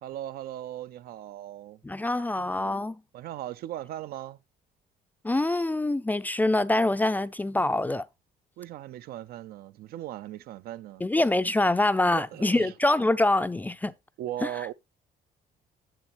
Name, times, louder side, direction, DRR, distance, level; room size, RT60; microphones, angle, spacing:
voice 1, 0.0-1.8 3.1-4.4 8.6-11.1 12.1-12.7 14.2-14.7, right 12 dB, 65° right, 0.4 m, -38 dB
voice 2, 1.8-3.0 5.2-8.1 11.0-13.9 14.4-14.5, left 2 dB, 10° left, 0.3 m, -25 dB
7.9 x 7.2 x 2.9 m
cardioid pair, 110°, 17 cm